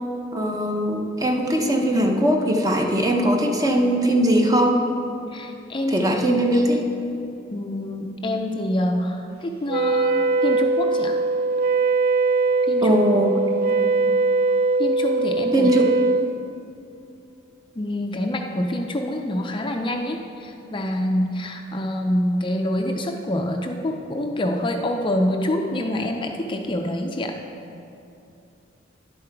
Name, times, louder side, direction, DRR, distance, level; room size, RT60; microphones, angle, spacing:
voice 1, 0.3-4.8 5.9-6.9 12.8-13.4 15.5-15.9, equal, 20° right, 2 dB, 0.8 m, -20 dB
voice 2, 5.3-6.1 7.5-11.2 12.7-13.0 14.8-15.8 17.8-27.3, left 1 dB, 25° left, 3 dB, 0.4 m, -26 dB
Wind instrument woodwind instrument, 9.7-16.3, right 3 dB, 50° right, 0.4 m, -21 dB
10.5 x 7.6 x 4.5 m, 2.7 s
head